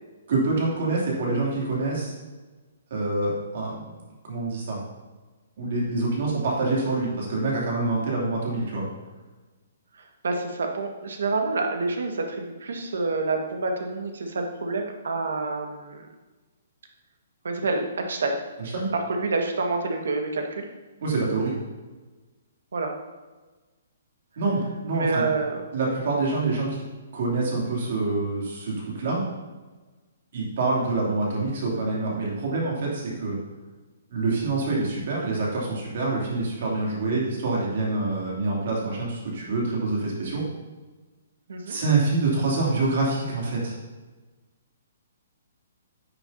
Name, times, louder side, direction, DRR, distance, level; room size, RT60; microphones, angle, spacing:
voice 1, 0.3-2.1 2.9-3.8 4.2-4.8 5.6-8.9 18.6-18.9 21.0-21.6 24.4-25.2 25.7-26.8 27.1-29.2 30.3-33.4 34.1-40.5 41.7-43.7, right 3 dB, 45° right, -4 dB, 2.8 m, -26 dB
voice 2, 9.9-16.1 17.4-18.3 18.9-20.7 22.7-22.9 24.9-25.6 41.5-41.8, right 3 dB, 85° right, 3 dB, 1.6 m, -28 dB
10.0 x 8.2 x 2.8 m, 1.2 s
hypercardioid pair, 180°, 0 cm